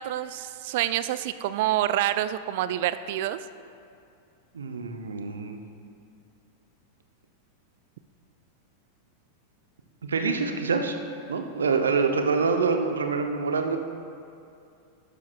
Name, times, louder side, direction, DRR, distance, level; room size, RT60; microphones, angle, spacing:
voice 1, 0.0-3.4, right 13 dB, 50° right, 13 dB, 0.3 m, -27 dB
voice 2, 4.5-5.6 10.0-10.9 11.3-13.8, right 4 dB, 70° right, 5 dB, 0.8 m, -26 dB
12.0 x 11.0 x 2.3 m, 2.6 s
figure-of-eight pair, 90°, 0 cm